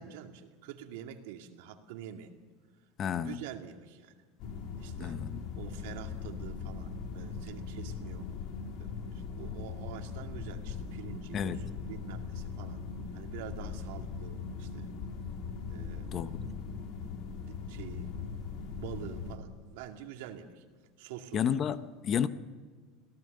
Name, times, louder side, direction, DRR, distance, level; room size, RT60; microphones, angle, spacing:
voice 1, 0.0-2.4 3.1-4.1 4.8-5.2 5.5-8.3 8.8-12.8 13.1-14.9 15.7-16.3 17.0-17.1 17.4-18.1 18.8-20.6 21.0-21.5, right 10 dB, 75° right, 2.3 m, -46 dB
voice 2, 3.0-3.4 4.9-5.4 11.3-11.6 16.1-16.3 21.3-22.3, left 8 dB, 30° left, 0.7 m, -31 dB
sound 1, 4.4-19.4, left 5 dB, 50° left, 2.2 m, -40 dB
26.5 x 17.5 x 6.7 m
supercardioid pair, 160°, 0 cm